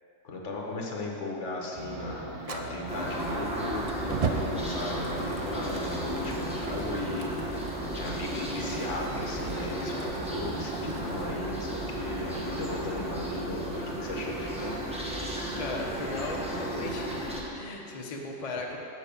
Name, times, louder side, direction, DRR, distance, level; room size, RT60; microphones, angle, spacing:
voice 1, 0.2-7.3 7.9-14.8, left 2 dB, 65° left, -1 dB, 1.4 m, -36 dB
sound 1, 1.7-13.2, right 2 dB, 25° right, 0.7 m, -41 dB
Fire, 2.4-11.4, right 5 dB, 60° right, 0.3 m, -39 dB
sound 2, 2.9-17.4, right 1 dB, 5° right, 1.0 m, -34 dB
voice 2, 15.6-17.3 17.5-18.8, left 2 dB, 35° left, -1 dB, 0.7 m, -36 dB
8.1 x 5.1 x 6.8 m, 2.8 s
omnidirectional pair, 1.3 m